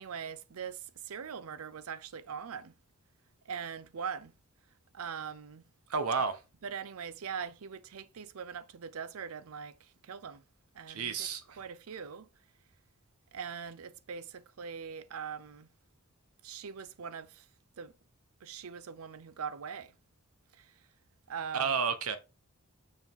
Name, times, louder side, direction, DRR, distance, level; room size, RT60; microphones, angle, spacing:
voice 1, 0.0-2.7 3.5-4.3 4.9-5.6 6.6-10.4 10.7-11.3 11.6-12.3 13.3-15.7 16.4-17.5 17.8-17.9 18.4-19.9 20.5-20.7 21.3-21.8, right 7 dB, 70° right, 0.5 m, -42 dB
voice 2, 5.9-6.4 10.9-11.6 21.5-22.2, right 5 dB, 90° right, 1.0 m, -31 dB
5.8 x 4.7 x 3.6 m
head